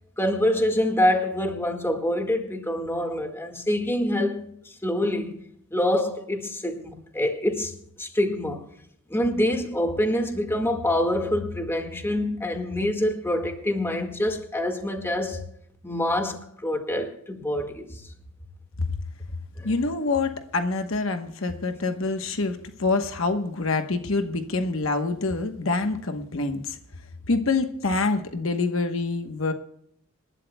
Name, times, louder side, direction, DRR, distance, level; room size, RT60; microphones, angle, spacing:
voice 1, 0.2-5.4 5.7-8.7 9.1-15.4 15.8-18.0 19.6-19.7, left 1 dB, 10° left, 1.8 m, -26 dB
voice 2, 19.6-26.8 27.3-29.5, left 3 dB, 65° left, 1.1 m, -26 dB
27.0 x 12.5 x 2.3 m
head